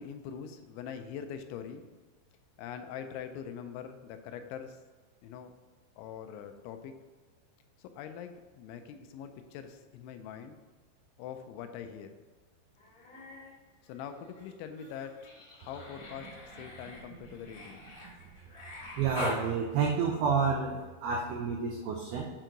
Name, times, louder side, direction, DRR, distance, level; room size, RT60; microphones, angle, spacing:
voice 1, 0.0-1.9 2.6-4.8 5.2-5.5 6.0-6.9 7.8-10.6 11.2-12.2 13.8-16.3 16.6-17.9, left 8 dB, 90° left, 8 dB, 3.0 m, -43 dB
Human voice, 12.8-13.5 13.8-19.4 21.0-21.1, left 2 dB, 50° left, 1.0 m, -44 dB
voice 2, 19.0-22.3, right 5 dB, 90° right, 0 dB, 2.2 m, -30 dB
8.0 x 4.6 x 3.8 m, 1.4 s
omnidirectional pair, 5.3 m